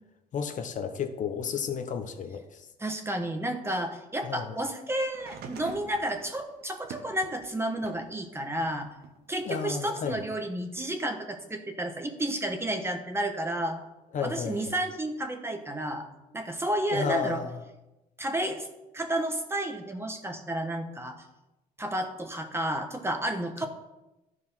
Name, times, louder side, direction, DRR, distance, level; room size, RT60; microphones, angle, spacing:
voice 1, 0.3-2.7 4.2-4.6 9.4-10.2 14.1-14.6 16.9-17.5, left 7 dB, 50° left, 7 dB, 0.9 m, -32 dB
voice 2, 2.8-8.9 9.3-13.9 14.2-16.1 16.3-17.4 18.2-18.7 18.9-21.2 21.8-23.7, right 1 dB, 15° right, 5 dB, 1.2 m, -31 dB
sound 1, 5.1-8.1 8.6-9.8 10.8-10.9, right 6 dB, 65° right, 1.3 m, -46 dB
12.5 x 4.7 x 5.6 m, 0.99 s
cardioid pair, 110°, 17 cm